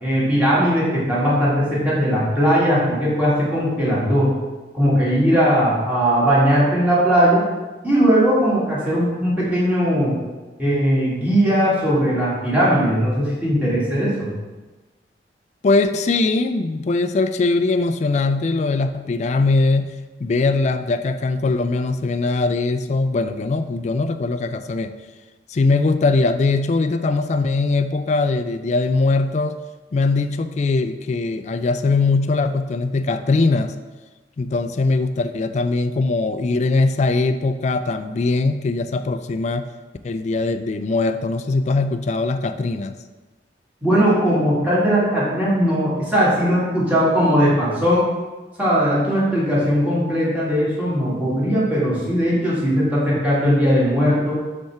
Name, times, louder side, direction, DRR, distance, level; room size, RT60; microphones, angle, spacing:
voice 1, 0.0-4.3 4.7-7.5 7.8-10.2 10.6-14.3 43.8-48.1 48.6-54.4, equal, 10° right, -8 dB, 1.9 m, -19 dB
voice 2, 15.6-19.9 20.2-24.9 25.5-29.6 29.9-33.7 34.4-39.6 40.0-42.9, left 3 dB, 40° left, 10 dB, 0.3 m, -21 dB
5.4 x 3.5 x 5.7 m, 1.2 s
head